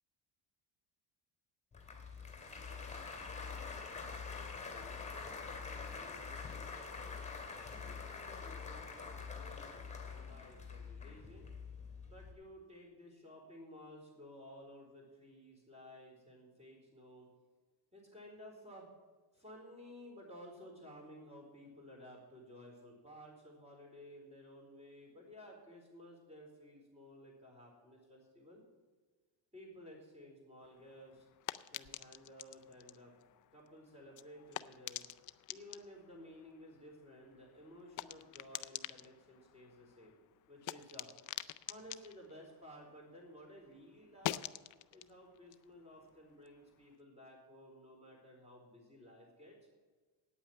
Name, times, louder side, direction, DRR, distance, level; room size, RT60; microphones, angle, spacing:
Applause, 1.7-12.3, left 5 dB, 15° left, 2.2 m, -45 dB
voice 1, 2.1-4.1 4.5-7.3 7.8-11.5 12.0-17.3 17.9-18.9 19.3-28.6 29.5-31.3 31.7-33.1 33.5-35.0 35.5-40.2 40.5-41.1 41.6-44.4 44.9-49.6, equal, 15° right, -1 dB, 4.3 m, -55 dB
sound 1, 30.6-43.4 43.7-46.9, left 14 dB, 45° left, 0.4 m, -48 dB
9.2 x 8.7 x 8.6 m, 1.4 s
cardioid pair, 140°, 46 cm